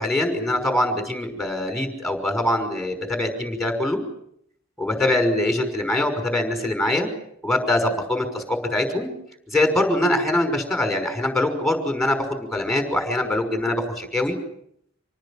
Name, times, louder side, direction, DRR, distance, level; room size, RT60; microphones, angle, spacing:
voice 1, 0.0-4.0 4.8-7.1 7.4-9.1 9.5-14.4, left 1 dB, ahead, 5 dB, 5.8 m, -23 dB
27.0 x 19.0 x 8.8 m, 0.71 s
head